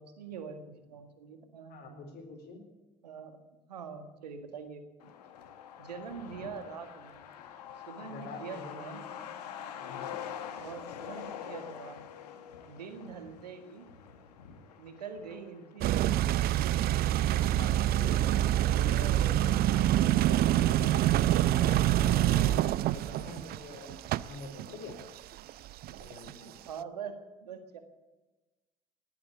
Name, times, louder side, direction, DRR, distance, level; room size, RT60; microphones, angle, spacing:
voice 1, 0.0-2.2 3.0-3.4 3.7-5.1 5.8-7.2 7.9-9.0 10.6-12.1 12.6-13.9 14.8-16.3 18.2-18.3 18.6-19.5 22.3-22.5 24.7-24.8 25.9-26.0 26.3-27.8, right 6 dB, 85° right, 8 dB, 1.7 m, -44 dB
voice 2, 1.7-2.6 8.1-9.1 9.8-10.1 17.3-21.0 21.5-25.0 26.0-26.5, left 4 dB, 55° left, 2 dB, 4.1 m, -46 dB
Truck, 5.0-20.2 20.5-20.6 20.9-21.7 22.0-22.1 22.5-22.8, left 9 dB, 80° left, 1.5 m, -46 dB
sound 1, 15.8-26.3, right 13 dB, 50° right, 0.6 m, -26 dB
19.0 x 8.5 x 8.2 m, 1.1 s
hypercardioid pair, 65°, 20 cm